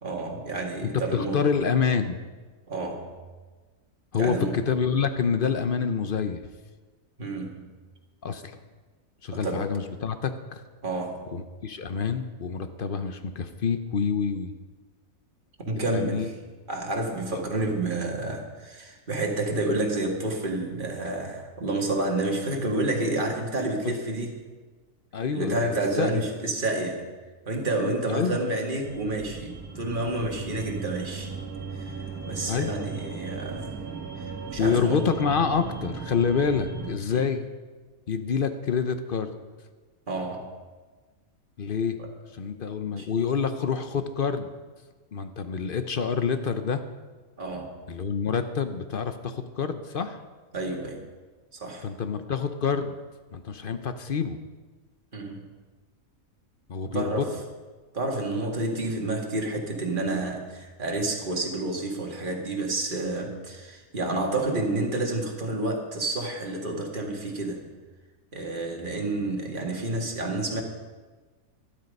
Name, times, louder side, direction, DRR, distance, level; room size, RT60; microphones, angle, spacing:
voice 1, 0.0-1.5 2.7-3.1 4.2-4.6 7.2-7.7 9.3-9.7 10.8-11.3 15.6-16.3 16.7-24.4 25.3-27.1 27.5-31.3 31.7-33.7 34.2-35.1 37.1-37.2 40.1-40.5 42.0-42.1 42.9-43.1 47.4-47.7 50.5-51.1 51.5-51.9 55.1-55.4 56.9-57.3 57.9-67.7 68.3-70.6, right 2 dB, 35° right, 0 dB, 2.0 m, -29 dB
voice 2, 0.9-2.2 4.1-6.4 8.2-8.6 9.2-10.6 11.3-14.5 15.9-16.3 17.3-17.4 23.8-23.9 25.1-26.1 28.1-28.4 32.5-32.7 34.6-37.5 38.1-39.3 41.6-42.0 42.3-44.5 45.1-46.8 47.9-50.2 51.8-53.0 53.3-54.4 56.7-57.2, left 6 dB, 50° left, 9 dB, 0.8 m, -27 dB
sound 1, 28.8-37.0, right 4 dB, 80° right, 1.8 m, -37 dB
12.5 x 12.0 x 5.3 m, 1.4 s
omnidirectional pair, 1.5 m